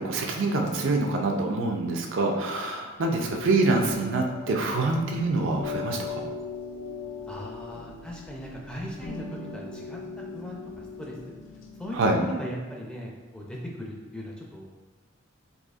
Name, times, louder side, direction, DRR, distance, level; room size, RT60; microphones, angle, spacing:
voice 1, 0.0-6.3 11.9-12.2, right 2 dB, 75° right, 2 dB, 0.5 m, -26 dB
sound 1, 3.0-12.1, left 5 dB, 70° left, 0.4 m, -39 dB
voice 2, 7.3-9.3 9.5-10.6 11.0-11.3 11.8-14.7, equal, 5° left, -2 dB, 0.4 m, -38 dB
4.0 x 2.7 x 2.3 m, 1.2 s
head